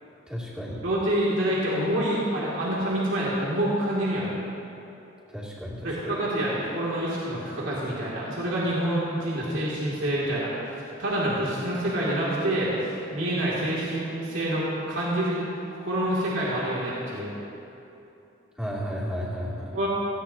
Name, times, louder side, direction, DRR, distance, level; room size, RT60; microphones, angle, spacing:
voice 1, 0.3-0.8 5.3-6.1 18.6-19.8, equal, 5° right, -7 dB, 2.7 m, -33 dB
voice 2, 0.8-4.3 5.8-10.5 10.8-15.4 15.8-17.3 19.7-19.9, right 1 dB, 75° right, -7 dB, 2.6 m, -27 dB
18.0 x 16.5 x 2.9 m, 2.8 s
head